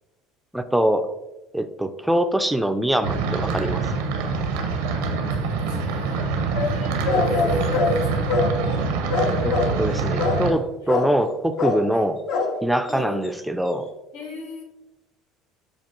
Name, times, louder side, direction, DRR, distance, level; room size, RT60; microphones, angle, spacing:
voice 1, 0.5-1.1 1.5-3.9 9.4-12.2 12.6-13.9, right 1 dB, 5° right, 8 dB, 0.3 m, -23 dB
sound 1, 3.0-10.5, right 4 dB, 80° right, 0.6 m, -25 dB
voice 2, 5.4-6.3 6.6-8.4 10.8-11.0 11.9-12.0 12.9-13.4 14.1-14.6, left 2 dB, 85° left, 0 dB, 1.0 m, -39 dB
sound 2, 6.5-8.8 9.1-9.9 10.2-10.6 10.9-11.3 11.6-11.9 12.3-12.6 12.9-13.0 13.2-13.3, left 4 dB, 60° left, 0.6 m, -24 dB
6.7 x 2.3 x 3.0 m, 1.0 s
hypercardioid pair, 75°, 0 cm